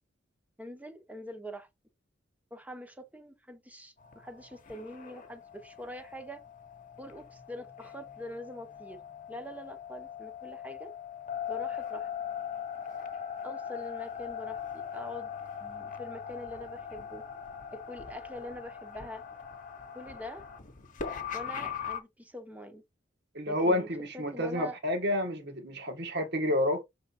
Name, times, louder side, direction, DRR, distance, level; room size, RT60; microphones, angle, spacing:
voice 1, 0.6-1.7 2.5-6.4 7.0-9.0 9.3-10.9 11.5-12.1 13.4-15.3 15.6-17.2 17.7-19.2 19.9-20.5 21.3-22.8 23.5-23.9 24.1-24.8, equal, 10° right, 1.0 m, -44 dB
sound 1, 4.0-22.0, left 7 dB, 45° left, 1.1 m, -40 dB
voice 2, 23.3-26.8, left 1 dB, 60° right, 1.9 m, -29 dB
6.5 x 3.8 x 4.3 m
head